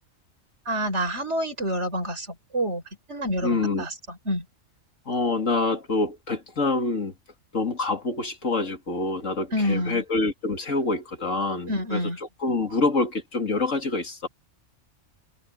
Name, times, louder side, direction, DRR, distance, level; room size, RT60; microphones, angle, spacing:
voice 1, 0.7-2.8 3.1-4.5 9.5-10.0 11.7-12.2, equal, 65° right, 5.4 m, -28 dB
voice 2, 3.4-3.8 5.1-7.1 7.5-12.0 12.4-14.3, left 3 dB, 80° left, 3.0 m, -26 dB
omnidirectional pair, 1.3 m